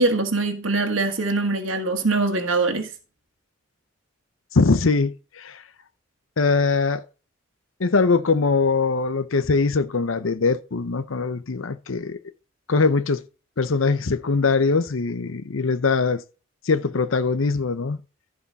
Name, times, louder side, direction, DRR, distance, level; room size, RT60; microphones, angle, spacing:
voice 1, 0.0-2.9, right 3 dB, 75° right, 1.5 m, -22 dB
voice 2, 4.5-5.6 6.4-7.0 7.8-12.2 12.7-13.2 13.6-16.2 16.6-18.0, left 4 dB, 80° left, 0.7 m, -22 dB
14.5 x 5.0 x 4.1 m
head